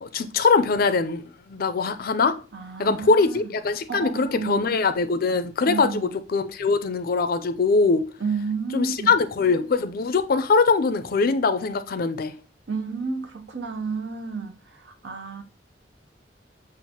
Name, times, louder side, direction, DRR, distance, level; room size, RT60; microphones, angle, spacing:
voice 1, 0.0-2.4 2.8-8.0 8.7-12.3, left 4 dB, 55° left, 0.5 m, -22 dB
voice 2, 2.5-3.5 3.9-4.6 5.7-6.1 8.2-9.1 12.7-15.4, right 4 dB, 75° right, 0.8 m, -31 dB
7.3 x 2.5 x 2.8 m
head